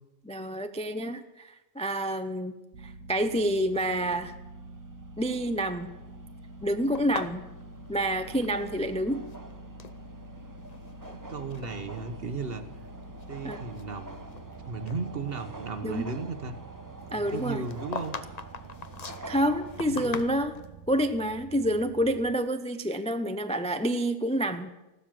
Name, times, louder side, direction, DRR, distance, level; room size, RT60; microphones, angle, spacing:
voice 1, 0.2-2.5 2.8-4.3 5.2-5.9 6.6-7.4 7.9-9.2 13.4-13.6 15.8-16.1 17.1-17.7 19.3-20.6 20.9-24.7, equal, 10° left, 9 dB, 0.4 m, -28 dB
sound 1, 2.7-22.3, right 3 dB, 80° right, 1.4 m, -47 dB
sound 2, 3.9-20.4, right 2 dB, 15° right, 0.8 m, -48 dB
sound 3, 6.9-8.9 9.2-10.0 10.6-11.2 11.5-11.7 12.4-12.5 13.0-14.5 14.9-15.0 17.3-20.7, left 5 dB, 35° left, 0.7 m, -41 dB
voice 2, 11.3-12.7 13.3-14.2 14.7-16.5 17.1-18.2 19.8-20.2, right 4 dB, 45° right, 10 dB, 1.2 m, -35 dB
15.0 x 12.0 x 7.5 m, 1.0 s
omnidirectional pair, 1.5 m